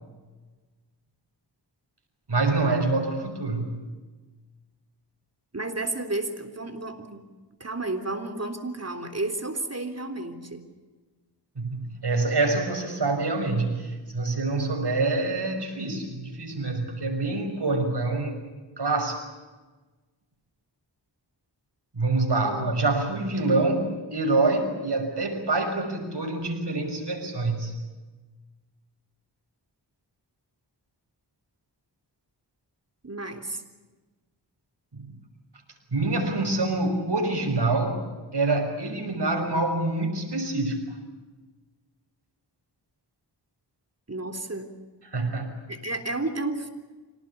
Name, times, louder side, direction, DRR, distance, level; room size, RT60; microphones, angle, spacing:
voice 1, 2.3-3.8 11.6-18.4 18.8-19.2 21.9-27.7 34.9-35.1 35.9-40.8 45.1-45.5, right 2 dB, 65° right, 4 dB, 5.9 m, -26 dB
voice 2, 5.5-7.3 7.6-10.7 22.3-22.8 33.0-33.6 44.1-44.7 45.7-46.7, right 2 dB, 35° right, 6 dB, 3.5 m, -32 dB
26.5 x 18.5 x 8.4 m, 1.3 s
wide cardioid pair, 55°, 43 cm